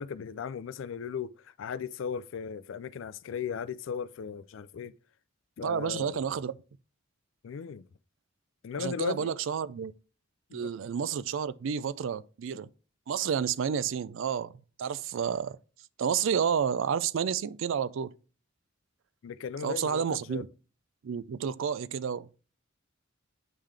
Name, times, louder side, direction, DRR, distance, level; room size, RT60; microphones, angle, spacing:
voice 1, 0.0-4.9 5.6-6.2 7.4-7.8 8.6-9.4 10.5-10.7 19.2-20.4, left 7 dB, 70° left, 0.3 m, -37 dB
voice 2, 5.6-6.6 8.8-9.9 10.5-12.7 13.1-14.5 14.8-15.6 16.0-18.1 19.6-20.5 21.0-22.3, right 7 dB, 70° right, 0.4 m, -30 dB
8.8 x 3.7 x 3.3 m
head